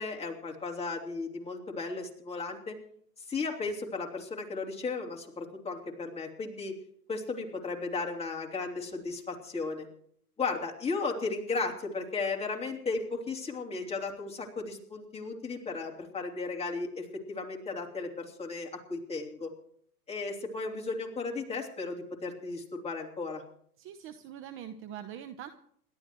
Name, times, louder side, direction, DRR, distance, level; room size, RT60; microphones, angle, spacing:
voice 1, 0.0-2.7 3.3-6.7 7.1-9.9 10.4-19.5 20.1-23.4, left 4 dB, 15° left, 0 dB, 3.2 m, -35 dB
voice 2, 23.8-25.5, right 9 dB, 25° right, 8 dB, 0.9 m, -43 dB
28.5 x 13.0 x 3.1 m, 0.64 s
hypercardioid pair, 110°, 46 cm